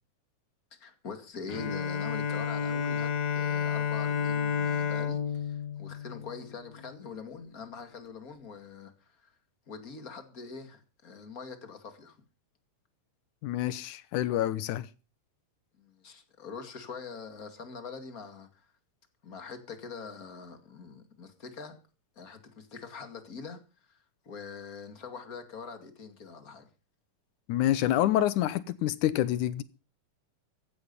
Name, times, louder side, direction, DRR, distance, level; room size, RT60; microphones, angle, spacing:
voice 1, 0.7-9.3 9.7-12.2 15.8-18.7 19.2-21.8 22.2-26.7, left 5 dB, 30° left, 2.4 m, -44 dB
Bowed string instrument, 1.5-7.0, left 7 dB, 50° left, 1.2 m, -31 dB
voice 2, 13.4-14.9 27.5-29.6, left 12 dB, 80° left, 2.3 m, -27 dB
15.0 x 11.5 x 5.5 m
omnidirectional pair, 3.6 m